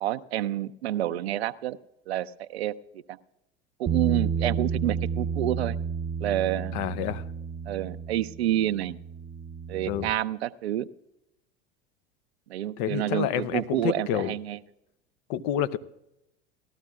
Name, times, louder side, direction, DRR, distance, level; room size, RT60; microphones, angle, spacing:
voice 1, 0.0-1.8 2.1-2.7 3.1-3.2 3.8-5.8 6.2-6.8 7.7-9.0 9.7-10.9 12.5-14.6, right 12 dB, 85° right, 12 dB, 0.5 m, -28 dB
Bass guitar, 3.9-10.1, right 6 dB, 25° right, 0.4 m, -31 dB
voice 2, 6.7-7.2 9.9-10.1 12.8-14.3 15.3-15.8, left 10 dB, 60° left, 13 dB, 0.8 m, -28 dB
19.0 x 13.0 x 2.4 m, 0.85 s
hypercardioid pair, 85°, 31 cm